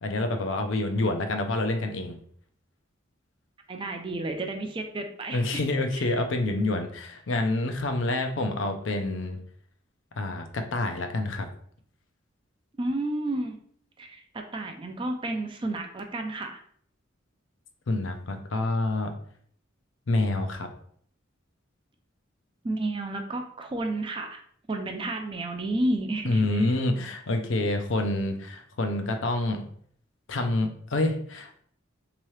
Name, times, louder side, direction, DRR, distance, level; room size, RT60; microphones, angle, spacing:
voice 1, 0.0-2.2 5.3-9.4 10.2-11.5 17.9-19.1 20.1-20.7 26.3-29.6 30.3-31.6, left 2 dB, 70° left, 5 dB, 0.5 m, -27 dB
voice 2, 3.7-5.6 6.0-6.1 12.8-13.6 14.0-16.6 22.6-24.4 24.7-26.7, right 2 dB, 25° right, 4 dB, 0.3 m, -31 dB
3.6 x 2.9 x 3.1 m, 0.62 s
head